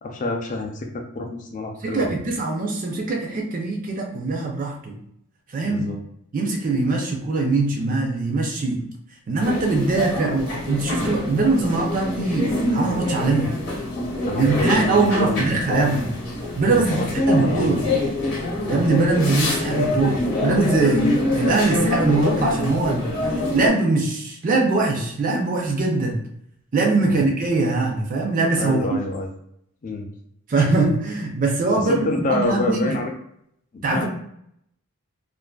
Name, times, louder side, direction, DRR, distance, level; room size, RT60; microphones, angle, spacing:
voice 1, 0.0-2.1 5.6-6.0 14.3-15.9 16.7-18.0 27.0-27.2 28.6-29.3 29.8-30.1 31.8-33.1 33.9-34.1, left 2 dB, 35° left, 2 dB, 0.3 m, -27 dB
voice 2, 1.8-5.0 5.5-5.9 6.3-8.8 9.3-13.5 14.3-16.1 16.6-17.9 18.7-21.1 21.3-26.2 26.7-29.0 30.5-33.0 33.8-34.1, right 3 dB, 35° right, 0 dB, 0.4 m, -22 dB
sound 1, 9.4-23.7, left 1 dB, 50° left, 0.8 m, -25 dB
2.5 x 2.4 x 2.2 m, 0.73 s
head